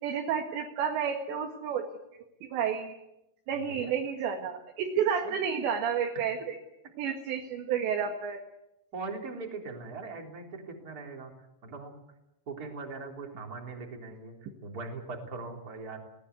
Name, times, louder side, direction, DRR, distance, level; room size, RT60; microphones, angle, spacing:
voice 1, 0.0-1.8 2.4-3.0 3.5-6.6 7.0-8.4, right 7 dB, 65° right, 2 dB, 3.8 m, -30 dB
voice 2, 3.6-3.9 5.2-5.3 6.1-6.2 8.9-11.3 11.6-11.9 12.5-14.3 14.6-16.0, right 3 dB, 20° right, 1 dB, 3.4 m, -40 dB
20.0 x 19.0 x 9.6 m, 0.87 s
omnidirectional pair, 5.8 m